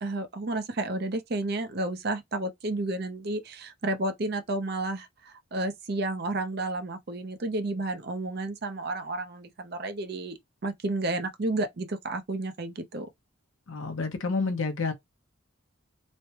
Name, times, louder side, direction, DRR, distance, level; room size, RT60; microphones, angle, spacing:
voice 1, 0.0-13.1, right 2 dB, 50° right, 0.6 m, -31 dB
voice 2, 13.7-14.9, left 4 dB, 75° left, 0.7 m, -29 dB
3.1 x 2.1 x 2.8 m
head